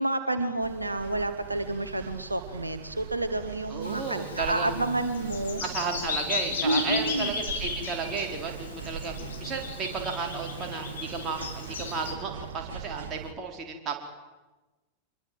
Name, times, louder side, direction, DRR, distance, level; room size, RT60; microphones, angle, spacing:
voice 1, 0.0-5.6 6.6-7.4, right 2 dB, 85° right, 9 dB, 1.5 m, -29 dB
sound 1, 0.6-13.3, right 7 dB, 60° right, 1.9 m, -41 dB
voice 2, 3.7-4.8 5.6-9.1 9.4-14.0, right 5 dB, 30° right, 2 dB, 4.7 m, -33 dB
Bird vocalization bird call bird song, 3.8-12.1, left 5 dB, 70° left, 4.3 m, -36 dB
26.0 x 22.0 x 7.8 m, 1.2 s
figure-of-eight pair, 90°, 0 cm